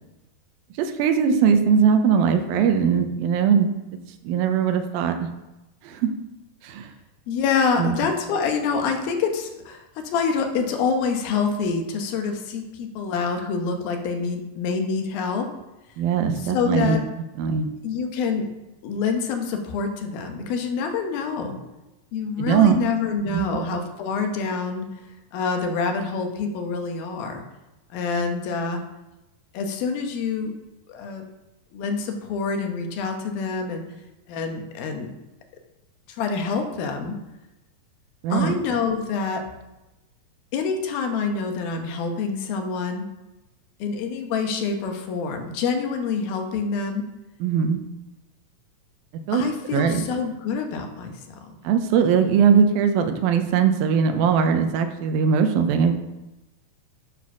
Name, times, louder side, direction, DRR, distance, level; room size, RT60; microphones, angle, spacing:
voice 1, 0.8-3.7 4.2-5.3 5.8-6.1 6.6-6.9 7.8-8.0 16.0-17.0 17.4-17.7 22.4-22.8 23.3-23.5 38.2-38.6 47.4-47.8 49.3-49.5 49.7-50.0 51.6-55.9, right 7 dB, 85° right, 7 dB, 2.5 m, -20 dB
voice 2, 7.3-15.5 16.4-17.0 17.8-18.5 18.8-21.6 22.1-24.9 25.3-27.4 27.9-28.8 29.5-30.6 30.9-31.2 31.7-33.9 34.3-35.1 36.1-37.2 38.3-39.4 40.5-43.1 43.8-47.1 49.3-51.2, left 5 dB, 85° left, 4 dB, 2.8 m, -26 dB
9.7 x 4.2 x 5.9 m, 1.0 s
omnidirectional pair, 4.2 m